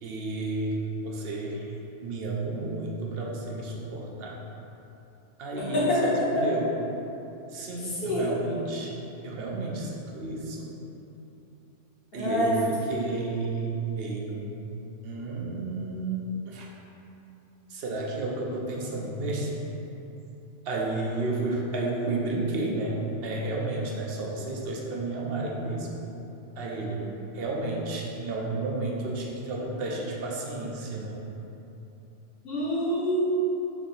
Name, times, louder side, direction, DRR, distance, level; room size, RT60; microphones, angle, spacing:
voice 1, 0.0-1.7 2.0-4.4 5.4-6.7 7.5-8.9 9.2-10.8 12.1-14.6 15.0-16.7 17.7-19.5 20.6-26.0 26.6-27.0 27.3-31.2, right 2 dB, 60° right, -2 dB, 0.8 m, -32 dB
voice 2, 5.6-6.4 7.8-8.4 12.1-12.5 32.4-33.5, equal, 55° left, -7 dB, 1.2 m, -26 dB
4.7 x 2.7 x 4.0 m, 3.0 s
omnidirectional pair, 1.3 m